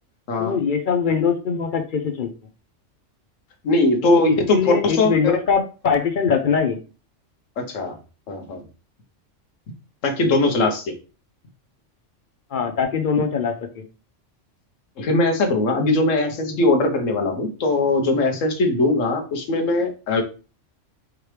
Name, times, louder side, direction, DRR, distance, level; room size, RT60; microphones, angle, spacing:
voice 1, 0.4-2.3 4.0-6.8 12.5-13.8, left 6 dB, 55° left, 6 dB, 0.6 m, -22 dB
voice 2, 3.6-5.1 7.6-8.0 8.3-8.6 10.0-10.9 15.0-20.2, left 2 dB, 85° left, 5 dB, 1.3 m, -20 dB
4.9 x 3.0 x 3.2 m, 0.34 s
omnidirectional pair, 1.3 m